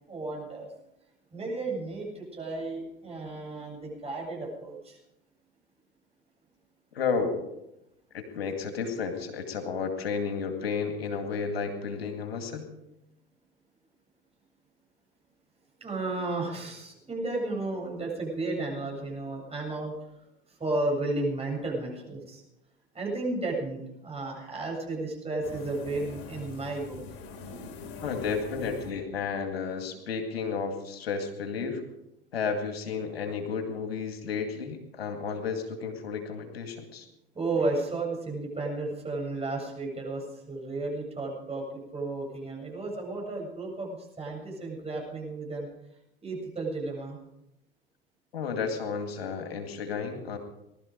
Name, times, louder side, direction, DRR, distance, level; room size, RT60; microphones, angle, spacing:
voice 1, 0.1-0.7 1.3-5.0 15.8-19.9 20.5-22.4 22.9-27.0 37.3-41.6 41.9-45.7 46.2-47.2, right 2 dB, 20° right, -1 dB, 7.9 m, -33 dB
voice 2, 6.9-7.5 8.1-12.7 28.0-31.8 32.3-37.1 48.3-50.4, left 5 dB, 85° left, 5 dB, 2.2 m, -32 dB
sound 1, 25.4-30.0, left 4 dB, 50° left, 3.4 m, -43 dB
20.0 x 12.5 x 5.2 m, 0.86 s
hypercardioid pair, 80°, 30 cm